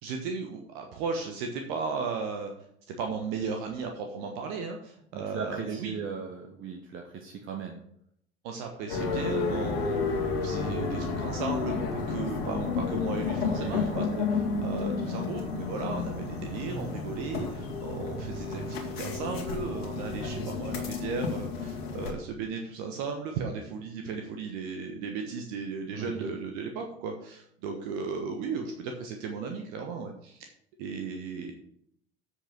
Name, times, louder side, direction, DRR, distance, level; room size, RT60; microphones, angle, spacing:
voice 1, 0.0-2.5 2.9-5.9 8.4-30.5 30.8-31.5, right 5 dB, 55° right, 4 dB, 1.3 m, -36 dB
voice 2, 5.1-7.8 13.4-13.9 25.9-26.4, right 6 dB, 40° right, 3 dB, 1.3 m, -37 dB
sound 1, 8.9-22.1, left 4 dB, 70° left, 2.1 m, -31 dB
8.1 x 6.7 x 6.1 m, 0.69 s
figure-of-eight pair, 65°, 31 cm